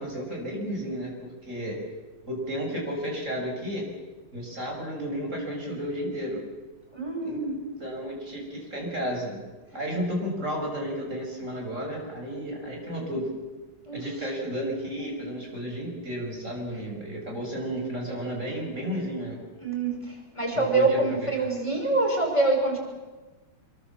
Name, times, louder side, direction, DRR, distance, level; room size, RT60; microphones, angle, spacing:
voice 1, 0.0-1.8 2.2-3.9 4.3-6.4 7.2-7.4 7.8-9.4 9.7-13.3 13.9-19.4 20.5-21.2, equal, 35° right, 0 dB, 7.2 m, -32 dB
voice 2, 6.9-7.6 13.9-14.1 19.6-22.8, right 3 dB, 15° left, 0 dB, 5.7 m, -25 dB
25.5 x 23.0 x 7.4 m, 1.2 s
omnidirectional pair, 2.3 m